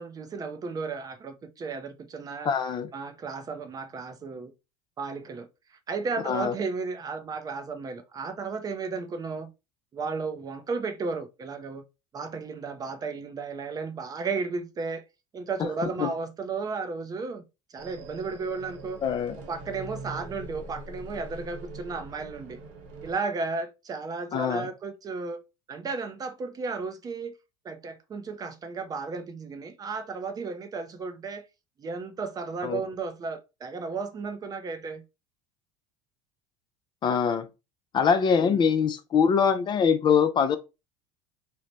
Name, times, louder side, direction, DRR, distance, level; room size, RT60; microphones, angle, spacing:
voice 1, 0.0-2.5 2.9-4.5 5.0-9.5 9.9-11.8 12.1-15.0 15.3-17.4 17.7-19.0 19.4-22.6 23.0-25.4 25.7-27.3 27.6-31.4 31.8-35.0 38.4-38.6, right 4 dB, 25° right, 0.5 m, -34 dB
voice 2, 2.4-2.9 6.3-6.5 16.0-16.1 19.0-19.4 24.3-24.7 32.6-32.8 37.0-37.5 37.9-40.6, left 6 dB, 30° left, 0.4 m, -23 dB
sound 1, 17.8-23.1, right 2 dB, 75° right, 0.9 m, -43 dB
3.1 x 2.1 x 3.9 m
supercardioid pair, 120°, 15 cm